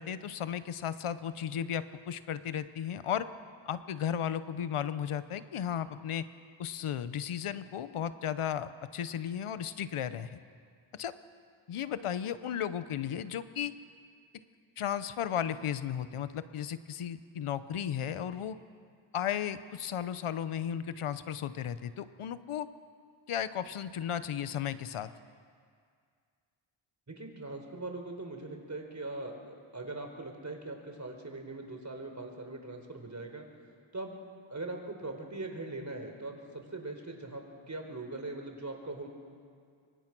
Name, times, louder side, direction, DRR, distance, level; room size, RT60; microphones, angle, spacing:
voice 1, 0.0-3.3 3.7-6.3 6.6-10.4 10.9-11.1 11.7-13.7 14.8-18.6 19.1-22.7 23.3-25.1, left 9 dB, 90° left, 13 dB, 0.9 m, -35 dB
voice 2, 27.1-33.5 33.9-34.2 34.5-39.1, right 2 dB, 35° right, 3 dB, 4.4 m, -41 dB
25.5 x 24.0 x 6.1 m, 2.1 s
cardioid pair, 65°, 49 cm